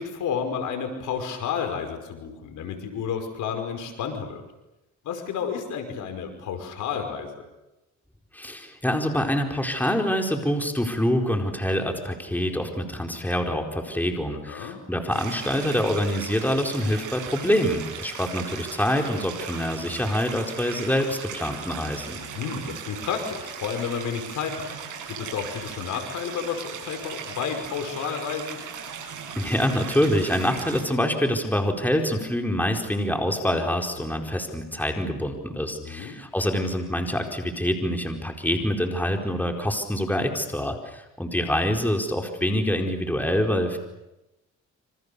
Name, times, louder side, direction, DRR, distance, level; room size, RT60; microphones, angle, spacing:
voice 1, 0.0-4.4 5.0-7.3 14.4-14.8 22.2-24.7 25.1-28.6 35.7-36.2, left 7 dB, 80° left, 6 dB, 5.4 m, -31 dB
voice 2, 8.3-22.2 29.4-43.8, equal, 5° left, 3 dB, 4.5 m, -25 dB
Stream, 15.1-30.8, right 7 dB, 85° right, 7.8 m, -38 dB
27.5 x 26.0 x 7.0 m, 0.95 s
cardioid pair, 90°, 30 cm